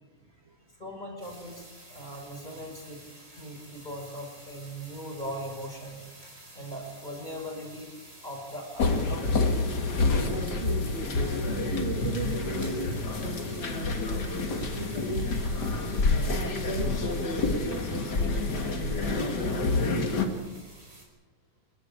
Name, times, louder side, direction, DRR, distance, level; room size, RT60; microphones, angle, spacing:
voice 1, 0.8-3.0 3.3-6.1 6.5-9.6, equal, 15° left, 1 dB, 5.1 m, -40 dB
sound 1, 1.2-21.1, right 1 dB, 25° right, 5.1 m, -51 dB
sound 2, 8.8-20.3, left 3 dB, 40° left, 2.1 m, -28 dB
voice 2, 10.2-15.5 16.6-19.9, right 2 dB, 85° right, 4 dB, 0.5 m, -38 dB
29.0 x 11.5 x 8.5 m, 1.3 s
omnidirectional pair, 3.5 m